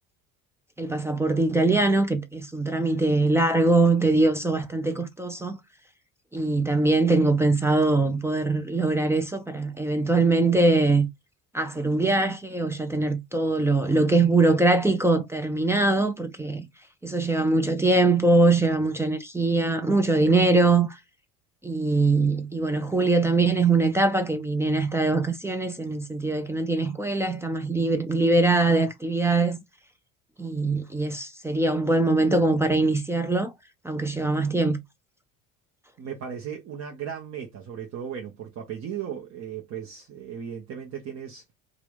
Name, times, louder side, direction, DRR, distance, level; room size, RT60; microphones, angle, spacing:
voice 1, 0.8-5.6 6.3-11.1 11.5-16.7 17.0-21.0 21.6-29.6 30.4-33.5 33.8-34.8, right 2 dB, 5° right, 0.4 m, -22 dB
voice 2, 36.0-41.4, right 8 dB, 35° right, 0.8 m, -36 dB
2.8 x 2.5 x 3.3 m
figure-of-eight pair, 60°, 40 cm